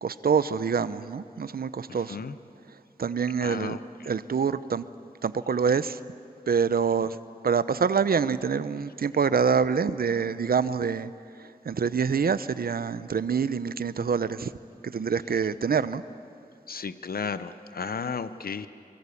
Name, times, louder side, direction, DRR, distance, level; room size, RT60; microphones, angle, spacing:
voice 1, 0.0-2.2 3.0-3.8 4.1-4.8 5.2-6.0 6.5-7.2 7.4-11.1 11.4-14.5 14.8-16.0, right 6 dB, 85° right, 14 dB, 0.8 m, -26 dB
voice 2, 1.9-2.4 3.4-3.8 16.7-18.7, left 5 dB, 85° left, 12 dB, 0.8 m, -34 dB
25.5 x 23.5 x 8.5 m, 2.4 s
wide cardioid pair, 70°, 15 cm